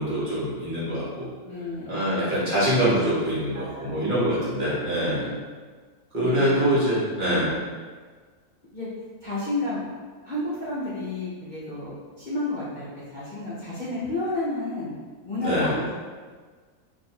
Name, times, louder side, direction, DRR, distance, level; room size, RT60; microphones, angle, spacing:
voice 1, 0.0-1.3 1.9-5.2 6.1-7.5 15.4-15.8, equal, 40° right, -9 dB, 1.1 m, -24 dB
voice 2, 1.4-1.9 3.5-4.1 4.9-5.4 6.2-6.6 7.3-7.7 8.7-8.9 9.2-9.8 10.2-14.9 15.2-16.0, left 2 dB, 45° left, -11 dB, 0.7 m, -31 dB
2.6 x 2.5 x 4.2 m, 1.5 s
omnidirectional pair, 1.5 m